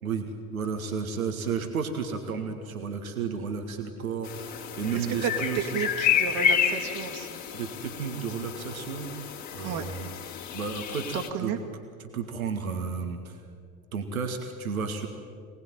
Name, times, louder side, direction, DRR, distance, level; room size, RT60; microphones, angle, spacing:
voice 1, 0.0-5.8 7.5-9.1 9.5-10.2 10.5-11.5 12.0-13.4 13.9-15.1, right 6 dB, 80° right, 4 dB, 2.0 m, -32 dB
sound 1, 4.2-11.3, left 8 dB, 40° left, 3.0 m, -30 dB
voice 2, 4.9-5.3 5.7-7.4 9.6-9.8 11.1-11.6, right 7 dB, 50° right, 4 dB, 2.3 m, -32 dB
26.0 x 19.0 x 9.1 m, 2.3 s
figure-of-eight pair, 65°, 42 cm